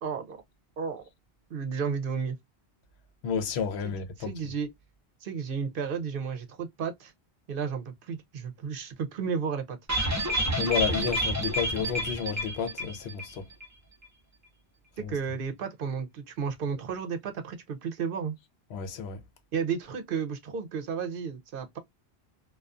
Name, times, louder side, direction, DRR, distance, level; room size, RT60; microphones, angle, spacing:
voice 1, 0.0-0.4 0.8-1.0 1.5-2.4 3.8-4.7 5.2-7.1 7.5-9.8 15.0-18.4 19.5-21.8, right 6 dB, 65° right, 0.7 m, -33 dB
voice 2, 3.2-4.3 10.6-13.4 15.0-15.1 18.7-19.2, left 7 dB, 85° left, 0.9 m, -31 dB
sound 1, 9.9-13.4 13.6-13.7 14.0-14.1, right 1 dB, 20° right, 0.6 m, -29 dB
2.3 x 2.3 x 2.4 m
omnidirectional pair, 1.1 m